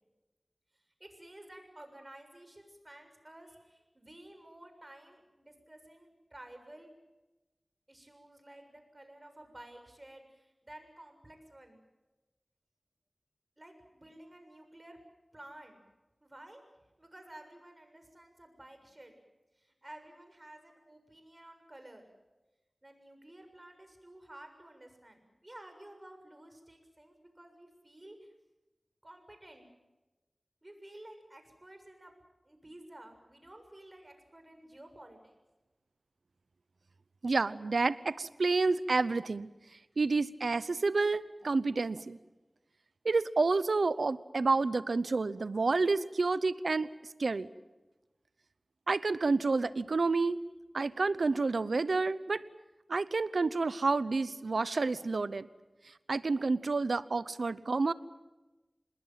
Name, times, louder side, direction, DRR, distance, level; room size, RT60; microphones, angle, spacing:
voice 1, 1.0-6.9 7.9-11.8 13.6-15.0 15.3-15.8 16.2-16.6 17.0-19.1 19.6-22.0 22.8-28.3 29.0-29.7 30.6-32.1 32.5-35.3, right 1 dB, 30° right, 6 dB, 6.9 m, -53 dB
voice 2, 37.2-39.5 40.0-42.2 43.0-46.9 47.2-47.5 48.9-50.4 50.7-52.4 52.9-55.5 56.1-57.9, right 3 dB, 90° right, 16 dB, 0.8 m, -29 dB
27.0 x 20.5 x 7.6 m, 1.1 s
wide cardioid pair, 50°, 0 cm